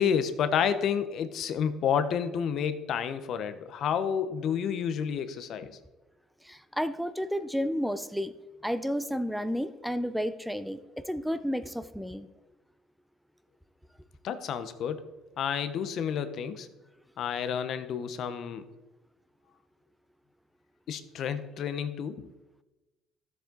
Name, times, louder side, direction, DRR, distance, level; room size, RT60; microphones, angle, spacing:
voice 1, 0.0-5.8 14.2-15.1 15.4-16.7 17.2-18.6 20.9-22.3, left 7 dB, 60° left, 11 dB, 0.8 m, -30 dB
voice 2, 6.4-8.3 8.6-12.3, equal, ahead, 12 dB, 0.6 m, -31 dB
12.5 x 7.4 x 3.9 m, 1.1 s
supercardioid pair, 75°, 0 cm